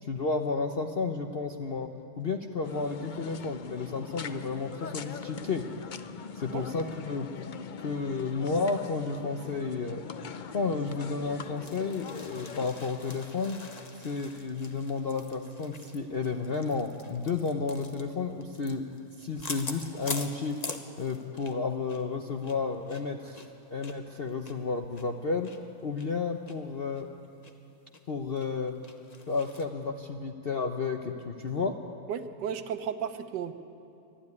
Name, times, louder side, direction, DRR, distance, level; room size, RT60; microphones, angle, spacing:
voice 1, 0.0-1.9 2.2-5.7 6.3-7.3 7.8-10.0 10.5-13.6 14.0-18.9 19.2-20.6 21.0-25.5 25.8-27.1 28.1-28.8 29.3-31.8, left 4 dB, 45° left, 4 dB, 0.9 m, -32 dB
sound 1, 2.6-12.7, left 6 dB, 80° left, 0.4 m, -42 dB
sound 2, 11.4-21.6 21.9-22.0 22.4-25.6 26.0-26.1 26.5-26.6 27.0-27.5 27.9-28.0 28.4-29.7, left 3 dB, 30° left, 1.1 m, -44 dB
voice 2, 32.1-33.5, right 8 dB, 90° right, 9 dB, 1.6 m, -34 dB
23.5 x 13.0 x 9.7 m, 2.6 s
omnidirectional pair, 1.8 m